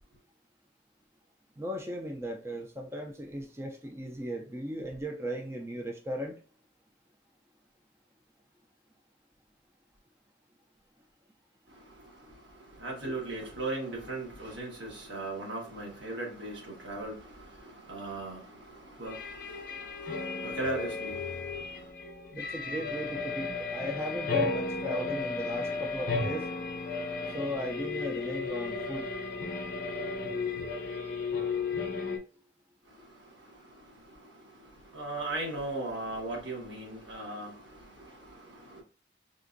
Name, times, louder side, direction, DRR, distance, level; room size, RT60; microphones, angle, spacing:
voice 1, 1.6-6.4 22.3-26.5 27.3-29.1, equal, 15° right, 0.3 m, -37 dB
voice 2, 11.7-21.9 32.8-38.8, right 2 dB, 80° right, 1.4 m, -39 dB
sound 1, 19.1-32.2, left 4 dB, 50° left, 0.6 m, -34 dB
3.7 x 2.5 x 2.5 m
head